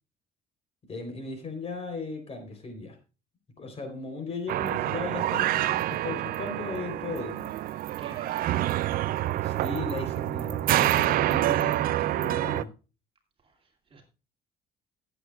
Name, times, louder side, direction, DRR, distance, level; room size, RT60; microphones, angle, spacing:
voice 1, 0.9-3.0 3.6-7.5 9.4-12.7, left 3 dB, 35° left, 5 dB, 3.7 m, -37 dB
sound 1, 4.5-12.6, right 14 dB, 60° right, 0.4 m, -27 dB
voice 2, 8.0-8.8 13.4-14.0, right 3 dB, 35° right, 2 dB, 2.6 m, -49 dB
17.0 x 8.1 x 2.4 m, 0.32 s
cardioid pair, 110°, 17 cm